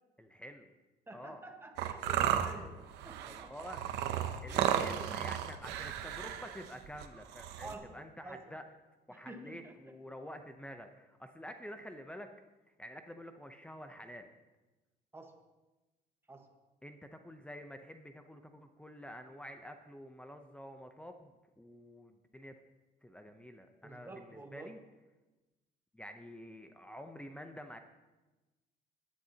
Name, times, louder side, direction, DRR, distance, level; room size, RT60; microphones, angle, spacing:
voice 1, 0.2-0.7 1.1-1.4 3.2-3.9 4.4-8.6 9.1-12.3 12.8-14.3 16.8-22.5 23.0-24.8 25.9-27.8, equal, 5° left, 6 dB, 0.7 m, -49 dB
voice 2, 1.1-3.5 4.5-4.8 5.6-5.9 7.6-8.6 9.1-10.0 15.1-15.4 16.3-16.5 23.8-24.8, right 2 dB, 15° right, 4 dB, 1.4 m, -49 dB
sound 1, 1.8-7.7, right 10 dB, 90° right, 0.8 m, -34 dB
17.5 x 10.5 x 2.9 m, 1.1 s
cardioid pair, 110°, 17 cm